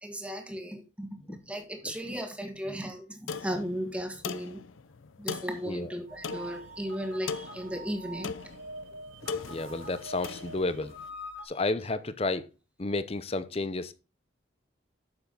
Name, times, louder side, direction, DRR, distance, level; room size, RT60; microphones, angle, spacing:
voice 1, 0.0-4.6 5.2-8.3, equal, 5° right, 1.7 m, -36 dB
sound 1, 3.3-11.0, left 5 dB, 85° left, 0.6 m, -40 dB
sound 2, 6.1-11.4, right 1 dB, 75° right, 4.4 m, -45 dB
voice 2, 9.4-10.9 11.4-12.5 12.8-13.9, left 2 dB, 30° left, 0.7 m, -31 dB
9.7 x 7.1 x 4.0 m
head